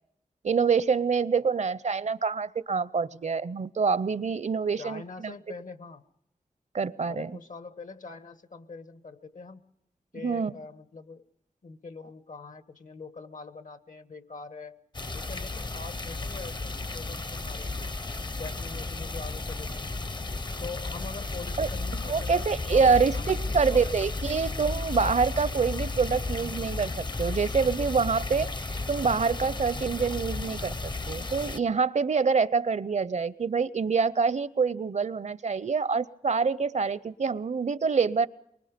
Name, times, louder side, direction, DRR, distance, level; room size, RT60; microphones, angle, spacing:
voice 1, 0.4-5.3 6.7-7.3 10.2-10.5 21.6-38.3, right 5 dB, 60° right, 19 dB, 0.7 m, -26 dB
voice 2, 4.8-6.0 7.1-9.6 10.1-11.3 11.6-14.8 15.1-17.9 18.4-20.0 20.6-24.0, left 4 dB, 70° left, 14 dB, 1.3 m, -43 dB
Hong Kong Chi Lin nunnery waterpond, 14.9-31.6, left 3 dB, 35° left, 0.7 m, -33 dB
24.0 x 21.0 x 5.1 m, 0.78 s
cardioid pair, 50°, 14 cm